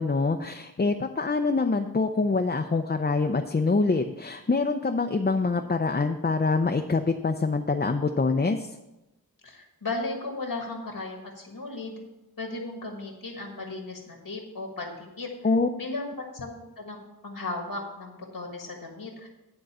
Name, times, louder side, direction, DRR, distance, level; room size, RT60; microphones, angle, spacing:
voice 1, 0.0-8.7 15.4-15.7, left 3 dB, 25° left, 5 dB, 0.5 m, -25 dB
voice 2, 9.4-12.0 12.4-15.3 15.8-16.5 16.8-17.0 17.2-19.3, left 2 dB, 75° left, 1 dB, 1.5 m, -35 dB
10.0 x 3.8 x 7.3 m, 0.97 s
wide cardioid pair, 60°, 38 cm